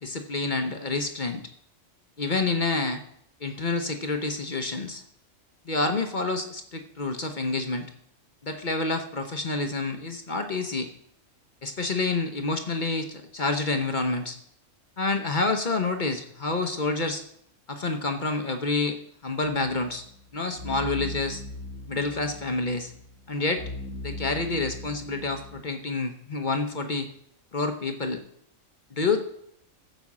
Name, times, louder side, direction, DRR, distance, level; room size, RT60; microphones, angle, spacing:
voice 1, 0.0-1.4 2.2-3.0 3.4-5.0 5.7-7.9 8.4-10.9 11.6-14.4 15.0-17.2 17.7-20.0 20.3-21.4 21.9-22.9 23.3-23.6 24.0-27.1 27.5-28.2 29.0-29.2, left 3 dB, 40° left, 7 dB, 0.9 m, -28 dB
sound 1, 19.4-25.6, left 2 dB, 85° left, 2.1 m, -40 dB
14.5 x 5.3 x 7.3 m, 0.71 s
omnidirectional pair, 1.4 m